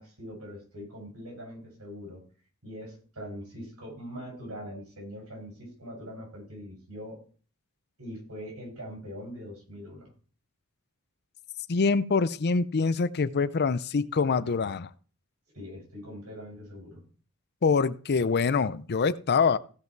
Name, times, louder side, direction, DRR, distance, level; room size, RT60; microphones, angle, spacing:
voice 1, 0.0-2.2 2.6-7.2 8.0-10.1 15.5-17.0, equal, 80° right, 6.9 m, -42 dB
voice 2, 11.7-14.9 17.6-19.6, left 5 dB, 50° left, 0.5 m, -25 dB
16.0 x 5.7 x 4.5 m
head